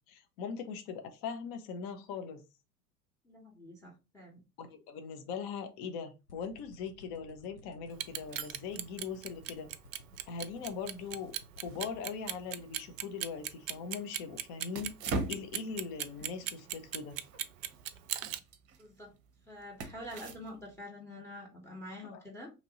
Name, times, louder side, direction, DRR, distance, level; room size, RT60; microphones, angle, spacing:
voice 1, 0.1-2.4 4.6-9.7 10.3-11.3 11.6-14.9 15.3-17.2 22.1-22.2, left 6 dB, 40° left, 7 dB, 0.7 m, -40 dB
voice 2, 3.2-4.4 18.8-19.1 19.5-22.5, left 1 dB, 5° left, 0 dB, 0.9 m, -46 dB
sound 1, 6.3-11.9, left 2 dB, 90° left, 0.9 m, -54 dB
Clock, 7.9-18.4, right 12 dB, 60° right, 0.5 m, -37 dB
sound 2, 11.6-20.8, right 2 dB, 35° right, 0.7 m, -44 dB
3.0 x 2.5 x 3.9 m, 0.28 s
figure-of-eight pair, 80°, 46 cm